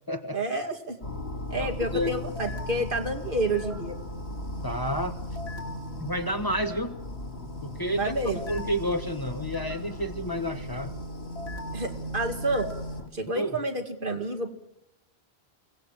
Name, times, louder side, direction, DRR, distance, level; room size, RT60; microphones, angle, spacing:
voice 1, 0.3-1.0 1.5-4.0 8.0-8.4 11.7-12.7 13.1-14.5, right 2 dB, 55° right, 4 dB, 2.4 m, -29 dB
sound 1, 1.0-13.1, left 1 dB, 75° left, 2.3 m, -36 dB
voice 2, 1.6-2.1 4.6-5.2 6.0-7.0 7.6-8.1 8.5-10.9 13.3-13.6, equal, 20° left, 6 dB, 1.2 m, -30 dB
23.0 x 18.5 x 7.5 m, 0.86 s
omnidirectional pair, 1.1 m